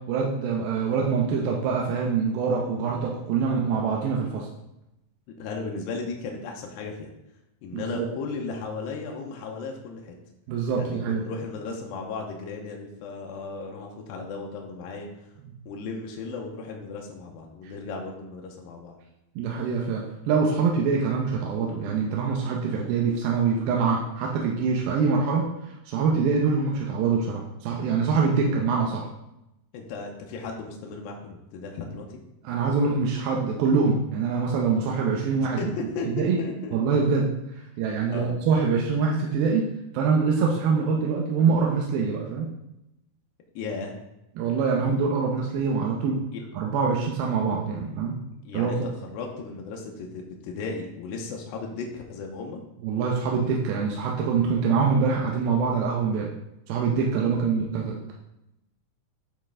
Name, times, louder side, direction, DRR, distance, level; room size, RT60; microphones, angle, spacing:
voice 1, 0.1-4.5 7.7-8.1 10.5-11.2 17.6-17.7 19.4-29.1 32.4-35.6 36.2-36.4 36.7-37.3 37.8-39.7 39.9-42.5 44.4-46.2 46.5-48.2 48.5-48.7 52.8-56.3 56.7-58.1, right 5 dB, 85° right, -1 dB, 2.6 m, -24 dB
voice 2, 5.4-7.1 7.6-10.1 10.7-15.3 15.7-19.0 29.7-32.2 35.4-36.8 38.1-38.3 43.6-43.9 46.3-46.4 48.4-52.6 57.2-57.5, left 4 dB, 85° left, 1 dB, 2.5 m, -35 dB
8.9 x 4.1 x 3.6 m, 0.89 s
omnidirectional pair, 4.1 m